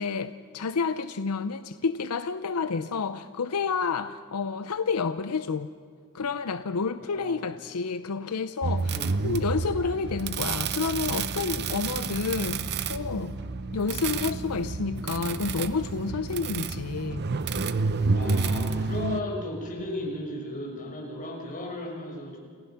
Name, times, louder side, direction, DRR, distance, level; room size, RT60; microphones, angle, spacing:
voice 1, 0.0-5.7 6.1-8.9 9.2-13.3 13.7-17.2, left 4 dB, 85° left, 11 dB, 0.7 m, -29 dB
voice 2, 7.0-7.5 8.9-9.2 18.1-22.4, left 1 dB, 35° left, -2 dB, 5.8 m, -35 dB
sound 1, 8.6-19.2, right 4 dB, 50° right, 0.7 m, -29 dB
29.0 x 15.5 x 5.8 m, 2.1 s
head